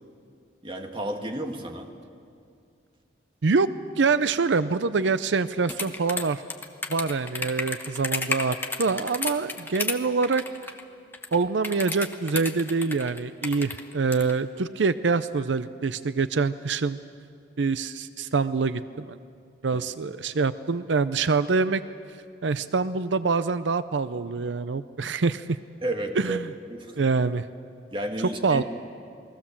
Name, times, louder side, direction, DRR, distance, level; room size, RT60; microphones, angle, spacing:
voice 1, 0.6-1.9 19.7-19.8 25.8-26.4 26.7-27.0 27.9-28.6, right 1 dB, 30° right, 3 dB, 1.9 m, -32 dB
voice 2, 4.0-6.4 6.9-10.4 11.3-17.0 17.6-19.2 19.6-21.8 22.4-25.6 26.2-26.5 27.0-27.4 28.4-28.6, right 4 dB, 85° right, 13 dB, 0.6 m, -25 dB
sound 1, 5.7-10.0 10.2-10.8 11.1-14.3, left 3 dB, 10° left, 1.2 m, -31 dB
29.0 x 20.5 x 7.3 m, 2.4 s
head